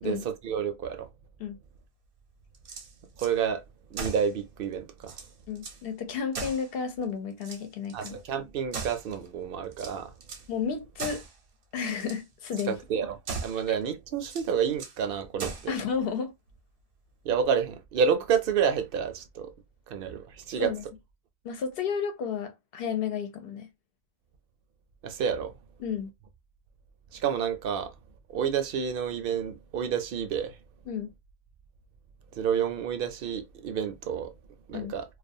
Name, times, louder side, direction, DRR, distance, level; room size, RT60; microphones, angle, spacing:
voice 1, 0.0-1.1 3.2-3.6 3.9-5.2 7.9-10.1 12.7-15.7 17.2-19.5 19.9-20.7 25.0-25.5 27.1-27.9 28.3-30.6 32.3-34.3 34.7-35.1, right 7 dB, 65° right, 0.7 m, -29 dB
sound 1, 2.5-3.3 3.9-4.3 4.7-4.8 5.0-5.8 6.3-7.0 7.4-8.2 8.7-9.3 9.7-10.5 11.0-11.4 11.9-12.2 12.5-12.7 13.2-13.7 14.2-15.0 15.4-15.8, right 4 dB, 85° right, 1.0 m, -39 dB
voice 2, 5.5-8.2 10.5-11.2 11.7-12.8 15.7-16.3 20.6-20.8 21.4-23.7 25.8-26.1 30.9-31.1 34.7-34.9, left 6 dB, 65° left, 0.8 m, -32 dB
2.3 x 2.3 x 2.6 m
omnidirectional pair, 1.1 m